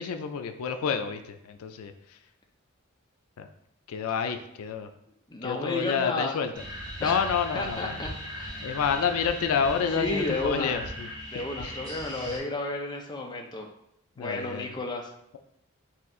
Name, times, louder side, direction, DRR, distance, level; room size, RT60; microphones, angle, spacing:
voice 1, 0.0-2.2 3.4-3.5 3.9-4.9 5.4-6.5 7.0-8.0 8.6-11.1 11.3-11.8 12.2-12.3 14.2-14.7, left 6 dB, 85° left, 7 dB, 0.4 m, -29 dB
voice 2, 5.3-6.4 7.0-7.2 7.5-8.7 10.0-10.8 11.3-13.7 14.2-15.1, left 2 dB, 20° left, 1 dB, 0.4 m, -32 dB
sound 1, 6.5-12.4, equal, 15° right, 0.9 m, -38 dB
4.3 x 2.4 x 3.7 m, 0.74 s
head